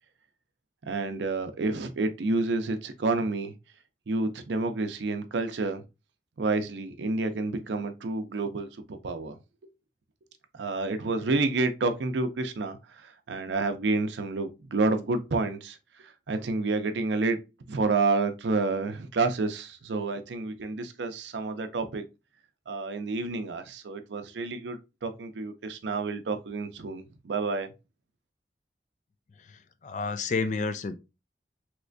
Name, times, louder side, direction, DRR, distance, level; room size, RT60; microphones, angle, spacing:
voice 1, 0.9-3.5 4.1-5.8 6.4-9.4 10.5-12.8 13.0-17.4 17.7-22.0 22.7-27.7, right 3 dB, 85° right, 0.5 m, -29 dB
voice 2, 29.4-31.0, left 4 dB, 45° left, 0.3 m, -31 dB
3.2 x 2.9 x 2.5 m
head